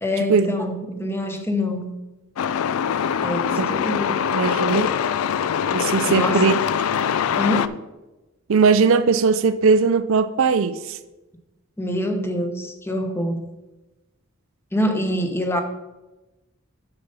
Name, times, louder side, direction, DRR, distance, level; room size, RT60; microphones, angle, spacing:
voice 1, 0.0-1.9 3.2-4.2 6.0-6.6 7.4-7.8 11.8-13.4 14.7-15.6, left 1 dB, 10° left, 0.9 m, -25 dB
Truck, 2.4-7.7, left 8 dB, 90° left, 0.4 m, -23 dB
voice 2, 4.3-4.9 5.7-6.6 8.5-11.0, right 5 dB, 70° right, 0.5 m, -19 dB
7.0 x 6.8 x 5.3 m
head